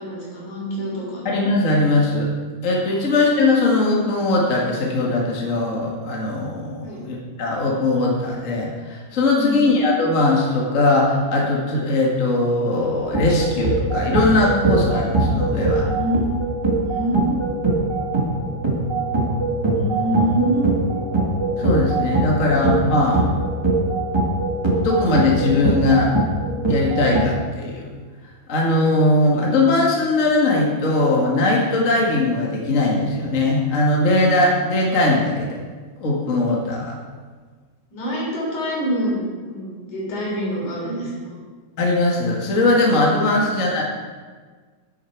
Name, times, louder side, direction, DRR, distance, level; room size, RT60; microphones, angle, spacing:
voice 1, 0.0-1.2 2.9-3.0 6.8-7.0 9.3-9.6 15.7-16.2 16.8-17.4 19.6-20.8 22.3-22.5 37.9-41.4, right 1 dB, 70° left, -4 dB, 4.9 m, -26 dB
voice 2, 1.2-2.3 2.6-15.9 21.6-23.2 24.8-26.1 26.7-27.9 28.5-35.6 36.0-37.0 41.8-43.8, left 2 dB, 30° left, -2 dB, 1.6 m, -20 dB
sound 1, 13.1-27.3, right 2 dB, 20° right, 0.8 m, -22 dB
10.5 x 10.0 x 4.6 m, 1.5 s
omnidirectional pair, 3.6 m